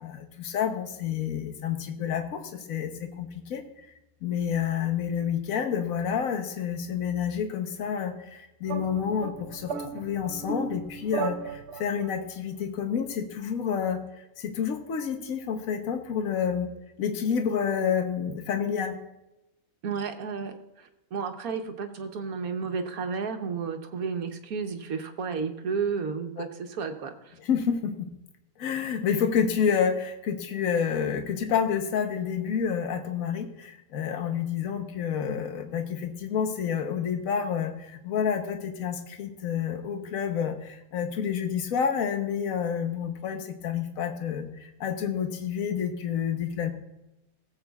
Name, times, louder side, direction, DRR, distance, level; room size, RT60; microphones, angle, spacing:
voice 1, 0.0-3.6 4.2-14.0 14.4-16.7 17.0-19.0 26.4-26.5 27.4-28.1 28.6-46.7, left 7 dB, 70° left, 6 dB, 1.3 m, -29 dB
sound 1, 8.7-12.1, right 5 dB, 55° right, 0.9 m, -35 dB
voice 2, 19.8-27.4, right 5 dB, 75° right, 6 dB, 1.4 m, -32 dB
20.0 x 7.8 x 2.4 m, 0.93 s
omnidirectional pair, 1.5 m